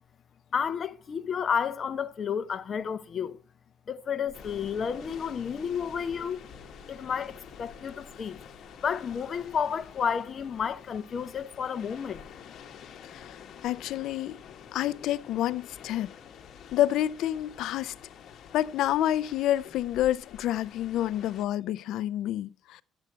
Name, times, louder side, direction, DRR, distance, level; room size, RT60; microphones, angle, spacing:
voice 1, 0.5-3.4 3.9-6.4 6.9-8.4 8.8-12.3, left 7 dB, 35° left, 0.8 m, -31 dB
sound 1, 4.3-21.4, left 8 dB, 50° left, 1.4 m, -49 dB
sound 2, 4.3-10.4, right 5 dB, 35° right, 6.1 m, -58 dB
voice 2, 13.1-14.4 14.7-16.1 16.7-17.9 18.5-22.8, left 12 dB, 70° left, 0.4 m, -28 dB
11.5 x 8.0 x 4.4 m
cardioid pair, 145°, 0 cm